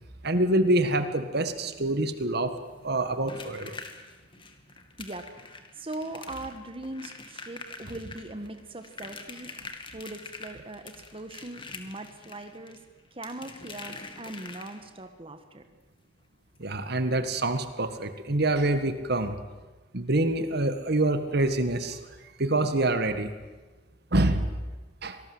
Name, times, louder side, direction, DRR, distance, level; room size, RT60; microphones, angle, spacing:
voice 1, 0.2-2.5 2.8-3.8 16.6-19.4 19.9-22.0 22.4-23.3 24.1-24.5 25.0-25.2, right 2 dB, 55° right, 9 dB, 1.7 m, -26 dB
sound 1, 2.6-15.1 16.5-16.6 16.9-17.1 17.5-17.6, left 3 dB, 25° left, 2.2 m, -45 dB
voice 2, 5.0-12.8 13.1-15.6, right 2 dB, 30° right, 7 dB, 1.5 m, -40 dB
26.0 x 19.0 x 7.9 m, 1.3 s
head